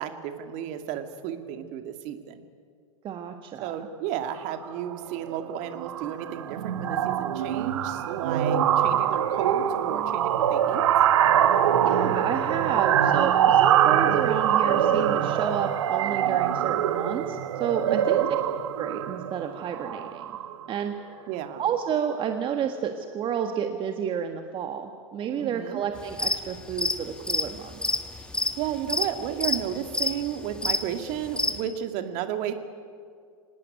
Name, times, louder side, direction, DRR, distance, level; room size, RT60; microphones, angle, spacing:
voice 1, 0.0-2.4 3.6-10.9 17.9-18.3 21.3-21.6 25.4-25.8 28.6-32.5, right 10 dB, 45° right, 7 dB, 2.3 m, -33 dB
voice 2, 3.0-3.9 11.8-18.2 18.8-20.2 20.7-20.9 21.6-28.0, right 8 dB, 30° right, 6 dB, 1.5 m, -31 dB
sound 1, 4.6-4.9 5.3-5.5 5.8-20.7, right 10 dB, 65° right, 1.2 m, -23 dB
sound 2, 26.0-26.4 26.7-31.6, left 2 dB, 5° left, 1.7 m, -27 dB
25.0 x 19.0 x 9.4 m, 2.2 s
figure-of-eight pair, 95°, 17 cm